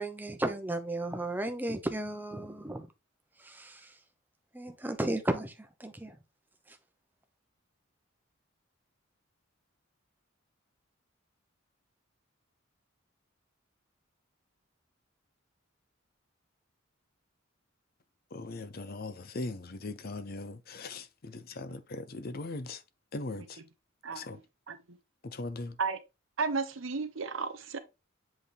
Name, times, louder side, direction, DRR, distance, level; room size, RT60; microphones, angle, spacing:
voice 1, 0.0-2.9 3.4-4.0 4.5-6.2 6.7-6.8, right 1 dB, 10° right, 0.9 m, -34 dB
voice 2, 18.3-22.8 23.1-23.6 24.1-24.4 25.2-25.8, left 2 dB, 45° left, 0.6 m, -39 dB
voice 3, 26.4-27.8, right 4 dB, 70° right, 0.9 m, -33 dB
7.7 x 4.0 x 3.4 m
head